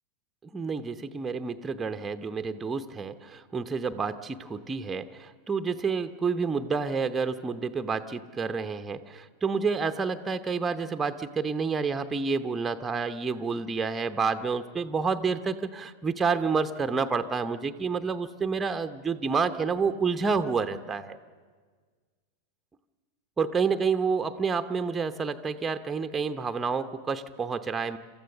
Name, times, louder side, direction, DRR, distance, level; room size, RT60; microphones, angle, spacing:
voice 1, 0.5-21.2 23.4-28.0, right 5 dB, 15° right, 8 dB, 0.8 m, -29 dB
27.0 x 14.5 x 6.7 m, 1.5 s
figure-of-eight pair, 90°, 0 cm